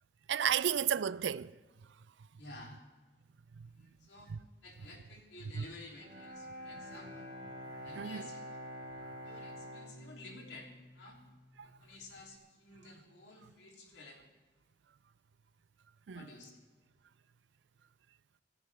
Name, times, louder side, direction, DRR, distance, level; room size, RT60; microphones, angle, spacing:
voice 1, 0.3-1.6 3.5-3.7 4.3-4.4 5.6-5.7 7.9-8.3 11.6-11.7 16.1-16.3, right 8 dB, 85° right, 0.4 m, -33 dB
voice 2, 2.4-2.8 3.6-4.4 4.6-7.3 7.8-8.6 9.2-11.2 11.6-14.2 16.1-16.5, left 2 dB, 75° left, 3.1 m, -53 dB
Bowed string instrument, 5.9-11.9, equal, 55° right, 3.7 m, -47 dB
25.0 x 14.5 x 3.5 m
head